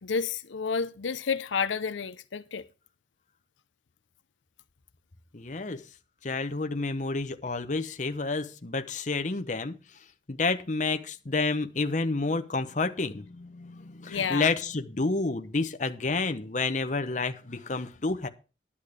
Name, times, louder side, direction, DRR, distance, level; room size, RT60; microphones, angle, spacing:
voice 1, 0.0-2.7 14.1-14.5, left 5 dB, 90° left, 0.6 m, -30 dB
voice 2, 5.3-5.8 6.2-9.8 10.3-18.3, left 3 dB, 40° left, 0.9 m, -29 dB
11.0 x 8.4 x 5.0 m
head